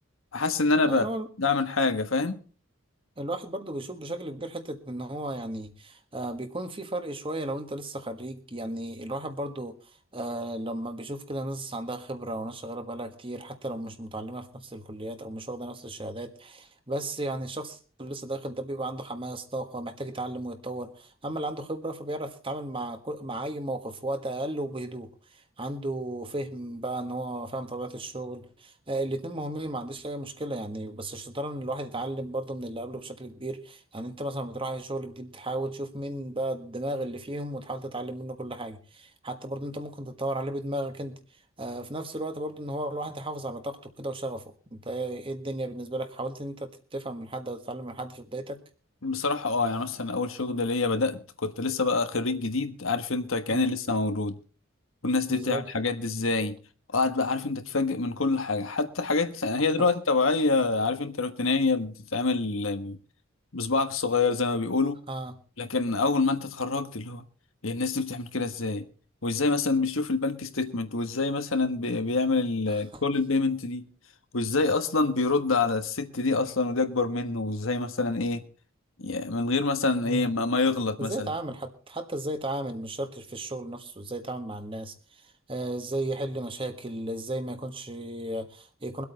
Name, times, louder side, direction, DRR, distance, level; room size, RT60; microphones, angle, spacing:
voice 1, 0.3-1.1 1.4-2.4 49.0-54.4 55.0-56.6 56.9-63.0 63.5-65.0 65.6-67.2 67.6-68.8 69.2-73.9 74.3-78.4 79.0-81.3, left 3 dB, 75° left, 1.4 m, -26 dB
voice 2, 0.8-1.3 3.2-9.7 10.1-41.2 41.6-48.6 53.5-53.7 55.3-55.7 59.8-59.9 65.1-65.4 72.7-73.0 80.0-80.3 81.0-89.0, right 1 dB, 25° right, 1.5 m, -34 dB
23.0 x 8.5 x 4.1 m
head